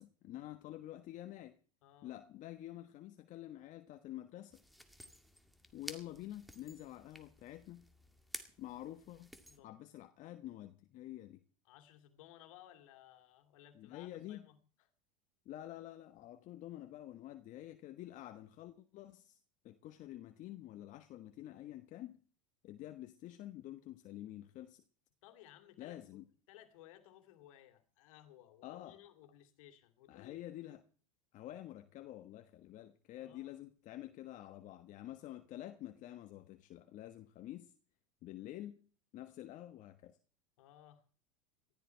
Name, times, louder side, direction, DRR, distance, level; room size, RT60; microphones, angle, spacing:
voice 1, 0.0-1.6 2.0-4.6 5.7-7.9 8.6-9.3 9.6-11.4 13.7-14.4 15.4-19.4 19.6-22.2 22.6-24.8 25.8-26.2 28.6-29.0 30.1-30.8 31.3-37.7 38.2-38.8 39.1-40.2, left 13 dB, 45° left, 1.3 m, -48 dB
voice 2, 1.8-2.2 9.5-9.8 11.6-14.6 25.2-26.2 26.5-30.5 33.2-33.6 40.6-41.0, left 12 dB, 70° left, 2.6 m, -59 dB
sound 1, 4.5-9.6, equal, ahead, 2.0 m, -53 dB
18.5 x 14.0 x 4.6 m
hypercardioid pair, 95°, 18 cm